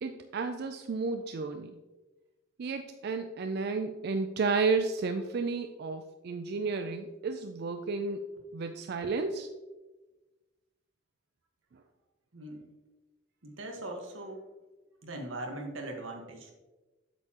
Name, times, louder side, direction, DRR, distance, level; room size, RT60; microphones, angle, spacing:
voice 1, 0.0-1.8 2.6-8.3 8.5-9.5, right 4 dB, 55° right, 7 dB, 0.4 m, -32 dB
voice 2, 12.3-12.6 13.4-14.4 15.0-16.5, right 1 dB, 90° right, 2 dB, 1.4 m, -40 dB
8.1 x 6.7 x 2.9 m, 1.2 s
head